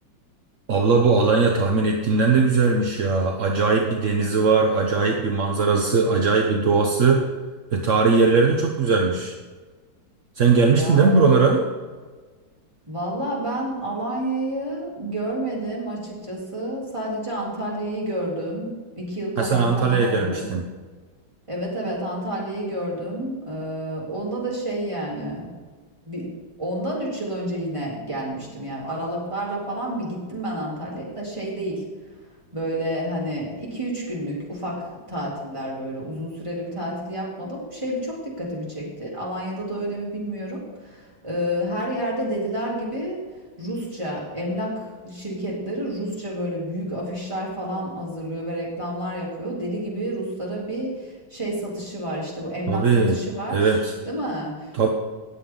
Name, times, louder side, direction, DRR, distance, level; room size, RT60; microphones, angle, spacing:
voice 1, 0.7-7.2 7.7-9.3 10.4-11.6 19.4-20.6 52.7-53.2 53.5-53.9 54.7-54.9, right 4 dB, 50° right, 2 dB, 0.9 m, -19 dB
voice 2, 10.7-11.3 12.9-20.5 21.5-25.5 26.0-26.3 26.6-31.8 32.5-34.8 35.1-43.2 43.6-54.9, right 1 dB, 15° right, -5 dB, 3.4 m, -30 dB
18.5 x 7.7 x 3.8 m, 1.4 s
omnidirectional pair, 2.2 m